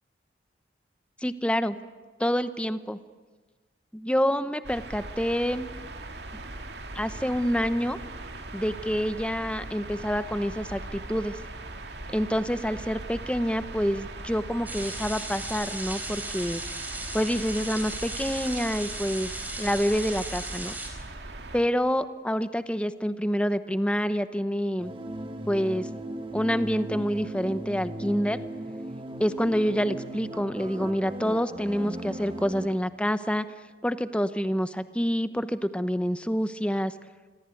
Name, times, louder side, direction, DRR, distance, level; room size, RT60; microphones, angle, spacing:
voice 1, 1.2-1.8 2.2-3.0 3.9-5.7 6.9-8.0 8.5-11.4 12.1-16.6 17.1-19.3 19.6-20.7 21.5-24.9 25.5-25.9 26.3-28.4 29.2-33.5 33.8-36.9, equal, 5° left, 12 dB, 0.9 m, -27 dB
sound 1, 4.6-21.6, right 2 dB, 70° right, 2.5 m, -40 dB
sound 2, 14.7-20.9, right 2 dB, 10° right, 4.3 m, -37 dB
sound 3, 24.8-32.7, right 1 dB, 30° right, 1.6 m, -37 dB
27.0 x 21.5 x 9.1 m, 1.4 s
head